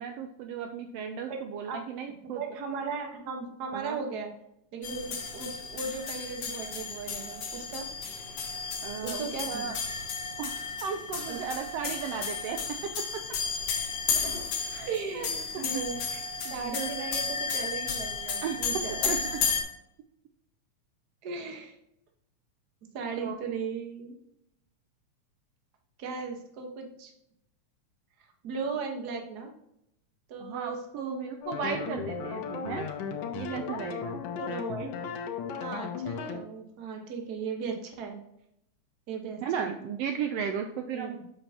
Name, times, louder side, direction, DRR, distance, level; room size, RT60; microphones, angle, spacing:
voice 1, 0.0-2.4 3.7-4.0 8.8-9.8 10.4-10.5 10.8-12.9 14.7-15.3 15.5-15.9 16.4-17.1 18.4-18.6 19.1-19.2 23.2-23.4 30.4-32.9 33.4-34.2 39.4-41.2, right 7 dB, 85° right, 5 dB, 1.4 m, -35 dB
voice 2, 1.3-1.8 2.2-4.3 4.7-7.9 9.0-9.7 11.3-11.4 14.2-14.4 14.9-16.2 16.5-19.2 21.2-21.8 22.9-24.1 26.0-27.1 28.4-29.5 30.3-31.3 34.4-34.9 35.6-38.2 39.1-39.8 40.9-41.1, right 5 dB, 55° right, 2 dB, 1.1 m, -37 dB
sound 1, 4.8-19.6, left 5 dB, 65° left, 2.3 m, -33 dB
sound 2, 31.4-36.4, left 6 dB, 80° left, 2.2 m, -35 dB
7.1 x 6.7 x 2.8 m, 0.78 s
omnidirectional pair, 3.4 m